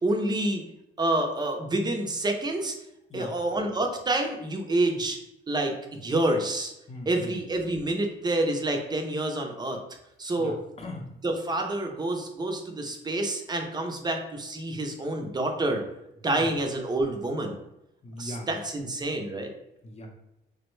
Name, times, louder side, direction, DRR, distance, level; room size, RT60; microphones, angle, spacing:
voice 1, 0.0-0.6 1.0-2.7 3.1-5.2 5.5-5.7 6.0-6.7 7.1-9.8 10.2-10.5 11.2-15.8 16.2-17.6 18.2-19.5, right 2 dB, 20° right, 3 dB, 0.6 m, -28 dB
voice 2, 6.9-7.3 10.4-11.1 16.3-16.5 18.0-18.5 19.8-20.1, left 1 dB, 30° left, 2 dB, 0.7 m, -39 dB
3.4 x 2.1 x 3.1 m, 0.86 s
cardioid pair, 90°, 20 cm